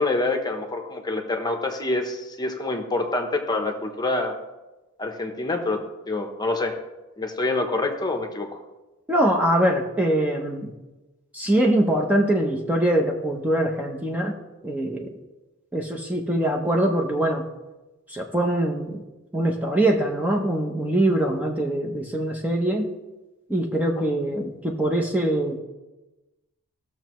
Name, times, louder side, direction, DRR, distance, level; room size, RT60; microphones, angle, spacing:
voice 1, 0.0-4.4 5.0-5.8 6.1-6.8 7.2-8.6, left 2 dB, 20° left, 5 dB, 0.9 m, -26 dB
voice 2, 9.1-10.7 11.3-14.3 14.6-15.1 15.7-17.5 18.1-19.0 19.3-22.9 23.5-25.6, right 1 dB, 5° right, 1 dB, 0.7 m, -23 dB
15.5 x 6.6 x 3.1 m, 1.1 s
head